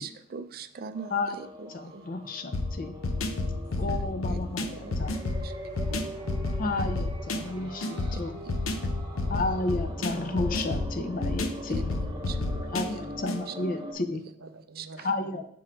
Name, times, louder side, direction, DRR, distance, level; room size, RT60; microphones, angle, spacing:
voice 1, 0.0-2.0 3.9-4.0 4.3-4.4 4.8-5.1 5.4-5.5 8.1-8.2 11.7-11.8 12.3-13.0 13.5-13.6 14.7-15.1, right 6 dB, 45° right, 11 dB, 0.4 m, -42 dB
sound 1, 0.9-13.9, equal, 20° right, 0.8 m, -42 dB
voice 2, 1.1-1.4 1.7-2.9 3.8-5.2 6.6-8.4 9.3-11.8 12.7-14.2 15.0-15.5, left 2 dB, 45° left, 9 dB, 0.6 m, -32 dB
sound 2, 2.5-13.4, left 2 dB, 90° left, 0.6 m, -31 dB
voice 3, 5.9-6.7 7.5-8.3 9.0-9.1 12.3-12.7 13.9-14.0 14.4-15.1 15.3-15.4, right 3 dB, 85° right, 9 dB, 0.6 m, -49 dB
6.0 x 3.7 x 4.4 m, 0.66 s
head